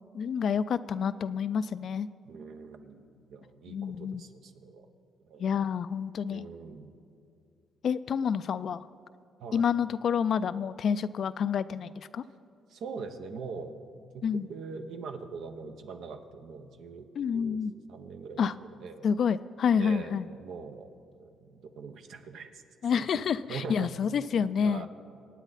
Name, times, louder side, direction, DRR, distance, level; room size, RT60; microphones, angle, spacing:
voice 1, 0.1-2.1 3.7-4.2 5.4-6.5 7.8-8.9 9.5-12.2 14.2-14.5 17.2-17.7 18.4-18.5 19.0-20.3 22.8-24.9, left 7 dB, 60° left, 15 dB, 0.4 m, -28 dB
voice 2, 2.2-4.9 5.2-5.5 6.3-6.9 9.4-9.7 12.7-17.1 17.3-17.6 17.9-19.1 19.8-20.9 21.2-22.6 23.0-23.9 24.2-24.3 24.6-24.9, right 5 dB, 75° right, 7 dB, 1.0 m, -42 dB
24.0 x 9.1 x 4.1 m, 2.5 s
cardioid pair, 90°, 0 cm